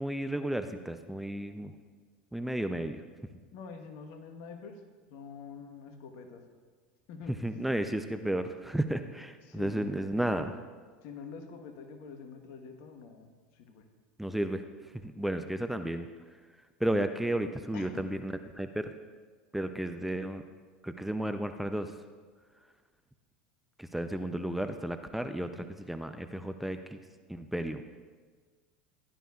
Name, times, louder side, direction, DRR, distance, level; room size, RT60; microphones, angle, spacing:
voice 1, 0.0-1.7 2.3-3.0 7.4-10.6 14.2-16.1 16.8-18.9 19.5-20.4 20.8-21.9 23.8-27.0 27.3-27.8, right 1 dB, 5° right, 8 dB, 0.5 m, -33 dB
voice 2, 3.5-4.8 5.1-6.4 7.1-7.4 9.4-10.0 11.0-13.9 17.7-18.0, left 5 dB, 55° left, 6 dB, 1.2 m, -46 dB
15.5 x 11.0 x 2.4 m, 1.5 s
hypercardioid pair, 80°, 5 cm